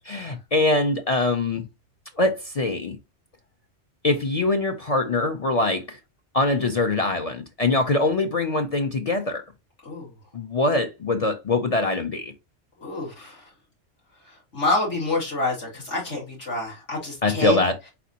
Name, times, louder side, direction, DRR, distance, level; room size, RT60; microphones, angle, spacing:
voice 1, 0.1-1.7 2.2-3.0 4.0-6.0 6.3-9.4 10.3-12.3 17.2-17.8, left 2 dB, 50° left, 0.4 m, -23 dB
voice 2, 12.8-13.3 14.5-17.6, left 2 dB, 80° left, 2.6 m, -27 dB
4.1 x 4.1 x 2.7 m
omnidirectional pair, 1.2 m